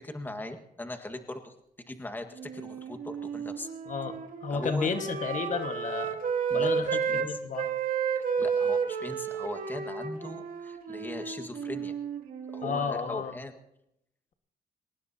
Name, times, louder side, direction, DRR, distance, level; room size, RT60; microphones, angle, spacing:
voice 1, 0.0-1.5 1.9-3.7 4.5-4.9 6.5-7.4 8.1-11.9 12.5-13.5, left 1 dB, 10° left, 6 dB, 1.7 m, -39 dB
Wind instrument woodwind instrument, 2.4-7.3 7.5-12.9, right 6 dB, 65° right, 2.2 m, -32 dB
voice 2, 3.9-6.2 6.5-7.7 12.6-13.3, left 5 dB, 55° left, 6 dB, 1.6 m, -32 dB
23.0 x 19.0 x 2.8 m, 0.80 s
cardioid pair, 100°, 15 cm